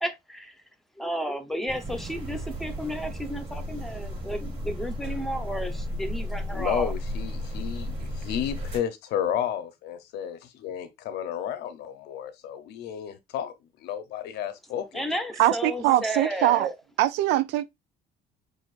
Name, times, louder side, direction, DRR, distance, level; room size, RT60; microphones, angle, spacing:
voice 1, 0.0-0.6 1.0-6.9 14.9-16.7, equal, ahead, 0.8 m, -32 dB
sound 1, 1.7-8.8, equal, 30° right, 3.0 m, -34 dB
voice 2, 6.5-10.4 10.6-13.5 13.8-15.0, left 9 dB, 80° left, 0.8 m, -32 dB
voice 3, 15.4-16.7 17.0-17.6, right 14 dB, 90° right, 0.4 m, -22 dB
6.2 x 2.5 x 2.5 m
cardioid pair, 110°, 17 cm